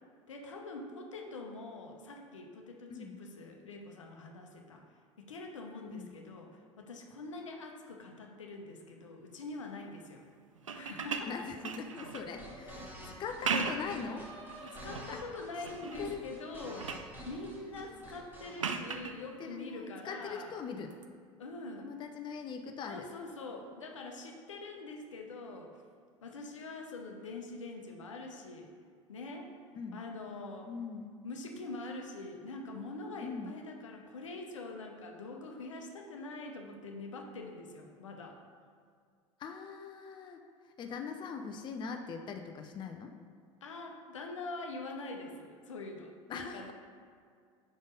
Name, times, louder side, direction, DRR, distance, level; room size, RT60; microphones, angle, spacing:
voice 1, 0.3-4.8 5.2-6.5 6.8-10.2 10.7-11.5 14.8-20.5 21.4-21.9 22.9-25.8 26.2-28.7 29.1-29.5 29.9-30.7 31.2-38.4 43.6-46.7, left 2 dB, 75° left, 2 dB, 0.8 m, -44 dB
voice 2, 2.9-3.2 5.9-6.1 11.2-14.3 15.1-15.2 16.0-16.3 17.7-18.0 19.4-20.9 21.8-23.1 29.7-30.0 30.6-31.2 33.2-33.5 39.4-43.1 46.3-46.7, left 5 dB, 30° left, 4 dB, 0.5 m, -42 dB
sound 1, 10.6-12.3 13.2-14.0 14.5-15.1 15.6-16.1 16.4-17.1 18.6-19.2 20.9-21.0, right 5 dB, 80° right, 0.4 m, -37 dB
sound 2, 12.1-18.6, equal, 15° right, 1.8 m, -49 dB
Singing, 12.1-17.4, right 1 dB, 40° right, 1.3 m, -54 dB
5.2 x 5.2 x 5.2 m, 2.1 s
figure-of-eight pair, 70°, 16 cm